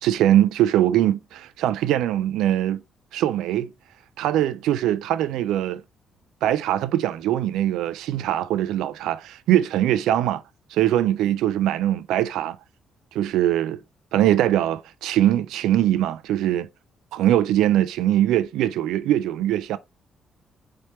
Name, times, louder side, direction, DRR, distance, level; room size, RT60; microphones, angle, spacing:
voice 1, 0.0-2.8 3.1-3.7 4.2-5.8 6.4-10.4 10.7-12.6 13.1-13.8 14.1-16.7 17.1-19.8, right 12 dB, 90° right, 0.3 m, -22 dB
4.2 x 3.3 x 3.0 m
cardioid pair, 90°, 0 cm